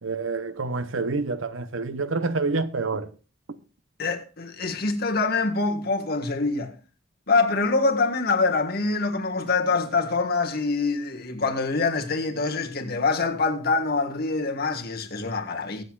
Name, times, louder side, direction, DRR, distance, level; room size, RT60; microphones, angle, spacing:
voice 1, 0.0-3.1, right 3 dB, 75° right, 0.8 m, -27 dB
voice 2, 4.0-6.7 7.3-15.8, left 3 dB, 50° left, 1.6 m, -25 dB
23.0 x 7.8 x 2.4 m
head